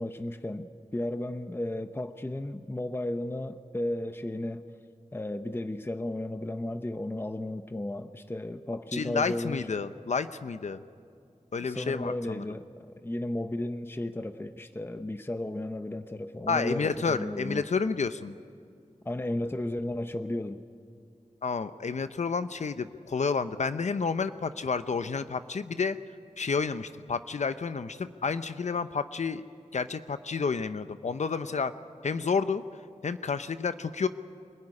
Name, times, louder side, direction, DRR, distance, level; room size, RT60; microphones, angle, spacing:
voice 1, 0.0-4.6 5.1-9.7 11.6-17.7 19.0-20.6, left 1 dB, 20° left, 9 dB, 0.8 m, -34 dB
voice 2, 8.9-10.8 11.5-12.4 16.5-18.3 21.4-26.0 26.4-29.4 29.7-31.7 32.0-32.6 33.0-34.1, left 5 dB, 70° left, 11 dB, 0.7 m, -30 dB
25.5 x 16.0 x 9.8 m, 2.4 s
wide cardioid pair, 75°, 12 cm